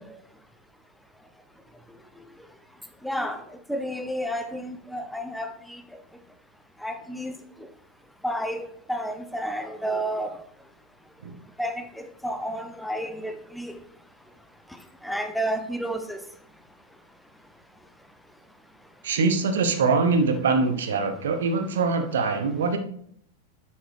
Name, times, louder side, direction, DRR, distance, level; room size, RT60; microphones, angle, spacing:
voice 1, 3.0-3.4 3.7-5.5 6.8-7.3 8.2-8.6 8.9-10.3 11.6-13.7 15.0-16.2, equal, ahead, 6 dB, 0.8 m, -30 dB
voice 2, 19.0-22.8, right 4 dB, 60° right, 7 dB, 1.0 m, -23 dB
10.0 x 7.6 x 3.3 m, 0.67 s
figure-of-eight pair, 90°, 0 cm